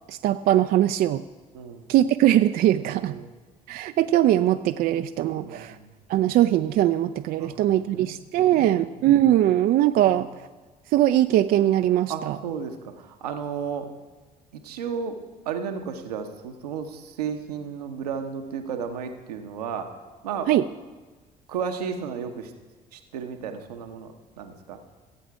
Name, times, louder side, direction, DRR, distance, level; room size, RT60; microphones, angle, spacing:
voice 1, 0.1-1.2 1.9-3.1 3.7-5.8 6.1-10.3 10.9-12.4 20.5-20.6, right 12 dB, 50° right, 10 dB, 0.4 m, -21 dB
voice 2, 1.5-1.9 2.7-3.3 5.3-5.9 7.4-8.9 10.0-10.4 12.1-13.9 14.5-15.2 15.4-19.9 20.2-20.5 21.5-22.5 22.9-24.8, right 6 dB, 80° right, 5 dB, 0.9 m, -34 dB
16.0 x 8.1 x 4.7 m, 1.3 s
figure-of-eight pair, 55°, 20 cm